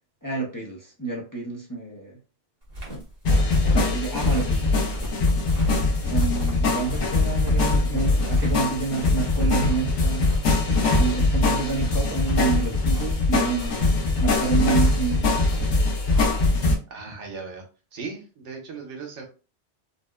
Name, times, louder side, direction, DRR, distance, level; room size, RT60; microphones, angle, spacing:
voice 1, 0.2-2.2 3.7-4.7 6.1-10.3 11.0-13.9 14.2-15.5, right 5 dB, 25° left, -2 dB, 0.5 m, -28 dB
sound 1, 2.6-16.7, equal, 35° right, 1.1 m, -36 dB
sound 2, 3.2-16.7, left 3 dB, 80° left, 1.1 m, -22 dB
voice 2, 16.9-17.6 17.9-19.2, right 4 dB, 90° right, 1 dB, 1.2 m, -37 dB
4.0 x 2.1 x 2.2 m, 0.34 s
omnidirectional pair, 1.2 m